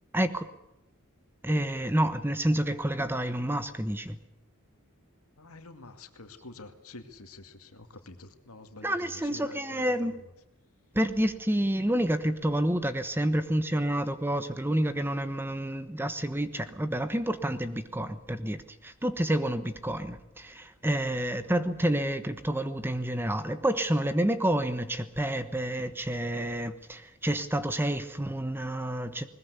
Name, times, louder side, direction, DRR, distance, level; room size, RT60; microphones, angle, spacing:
voice 1, 0.1-0.5 1.4-4.2 8.8-10.2 10.9-29.3, right 1 dB, 10° right, 11 dB, 1.1 m, -29 dB
voice 2, 5.4-10.2 21.4-21.5, left 2 dB, 85° left, 8 dB, 2.3 m, -47 dB
20.5 x 20.5 x 8.2 m, 0.85 s
head